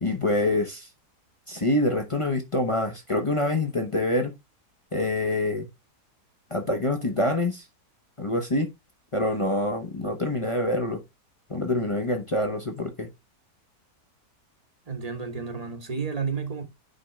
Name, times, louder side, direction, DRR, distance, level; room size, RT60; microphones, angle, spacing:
voice 1, 0.0-0.9 1.5-4.3 4.9-5.7 6.5-7.6 8.2-8.7 9.1-11.0 11.5-13.1, left 1 dB, 25° left, 0.7 m, -26 dB
voice 2, 14.9-16.6, right 5 dB, 25° right, 1.0 m, -31 dB
9.4 x 3.7 x 3.3 m
omnidirectional pair, 1.9 m